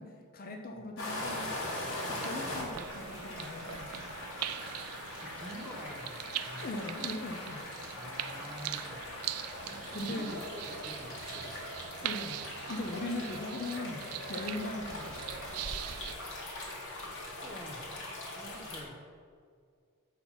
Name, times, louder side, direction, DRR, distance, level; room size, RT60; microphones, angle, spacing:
voice 1, 0.0-4.0 6.6-7.6 9.9-10.4 12.0-15.4, left 2 dB, 40° left, 3 dB, 0.6 m, -40 dB
sound 1, 1.0-18.8, left 1 dB, 60° left, 2.0 m, -41 dB
sound 2, 1.3-16.1, right 12 dB, 75° right, 0.4 m, -42 dB
voice 2, 5.2-6.7 8.0-9.1 9.6-11.8 17.4-19.0, equal, 5° left, 0 dB, 0.8 m, -48 dB
7.4 x 4.4 x 5.7 m, 2.2 s
head